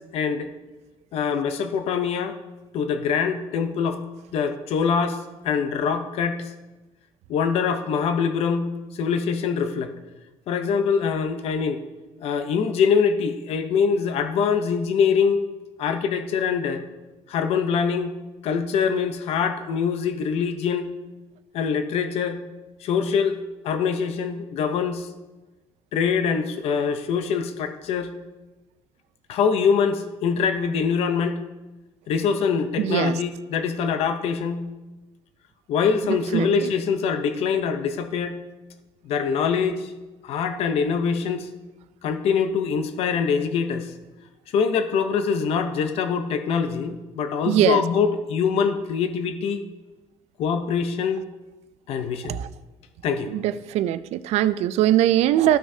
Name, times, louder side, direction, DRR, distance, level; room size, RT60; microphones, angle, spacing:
voice 1, 0.1-0.5 1.1-2.4 2.7-4.0 4.3-6.5 7.3-9.9 10.5-11.8 12.2-15.4 15.8-16.8 17.3-18.2 18.4-20.9 21.5-22.4 22.8-23.4 23.6-25.1 25.9-28.1 29.3-31.4 32.1-34.6 35.7-38.4 39.0-39.9 40.2-41.5 42.0-43.9 44.5-49.6 50.4-51.2 51.9-52.4 53.0-53.3, left 6 dB, 60° left, 8 dB, 0.7 m, -24 dB
voice 2, 32.8-33.2 36.3-36.7 47.5-47.8 52.3-52.5 53.3-55.6, right 12 dB, 70° right, 15 dB, 0.4 m, -21 dB
14.0 x 6.0 x 2.7 m, 1.1 s
cardioid pair, 165°, 12 cm